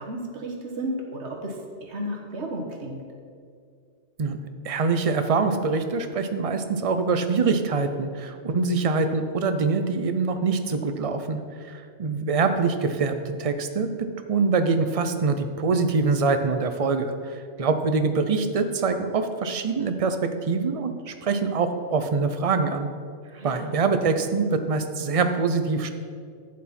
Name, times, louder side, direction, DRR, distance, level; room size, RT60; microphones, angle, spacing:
voice 1, 0.0-3.0 23.2-23.7, right 1 dB, 70° right, 1 dB, 1.6 m, -33 dB
voice 2, 4.6-22.9 23.4-25.9, right 4 dB, 40° right, 8 dB, 0.6 m, -24 dB
11.0 x 8.5 x 4.3 m, 2.2 s
omnidirectional pair, 1.2 m